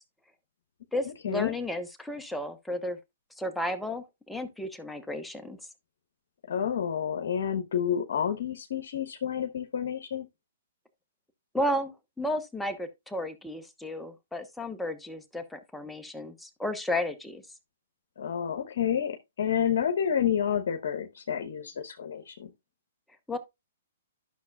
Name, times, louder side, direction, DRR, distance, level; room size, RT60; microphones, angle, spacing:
voice 1, 0.9-3.0 3.4-5.6 11.5-17.4 23.3-23.4, left 1 dB, 5° left, 0.9 m, -33 dB
voice 2, 6.5-10.3 18.2-22.5, left 8 dB, 65° left, 1.0 m, -29 dB
11.5 x 6.4 x 2.3 m
hypercardioid pair, 130°, 0 cm